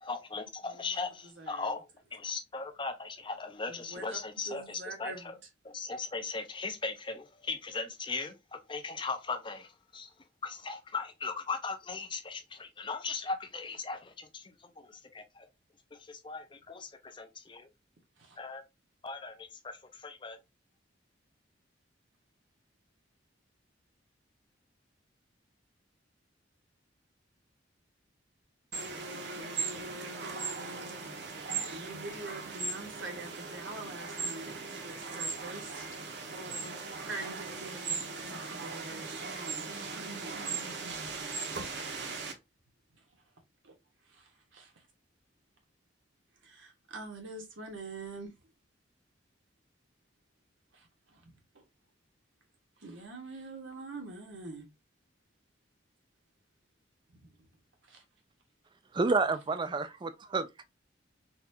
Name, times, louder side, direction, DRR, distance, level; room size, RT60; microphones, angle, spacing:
voice 1, 0.0-1.9 2.1-5.1 5.6-10.1 10.4-15.5 15.9-17.7 18.4-18.6 19.0-20.4, left 4 dB, 25° left, 0.5 m, -38 dB
voice 2, 0.7-1.0 1.4-1.7 3.7-5.3 18.2-18.4 31.5-35.8 37.0-40.7 43.6-43.7 44.1-44.7 46.4-48.3 50.7-51.6 52.8-54.7 57.1-57.2 57.9-58.0, right 2 dB, 85° right, 1.2 m, -45 dB
sound 1, 28.7-42.3, right 4 dB, 60° right, 0.8 m, -38 dB
voice 3, 58.9-60.6, right 3 dB, 25° right, 0.3 m, -29 dB
4.0 x 2.4 x 2.7 m
head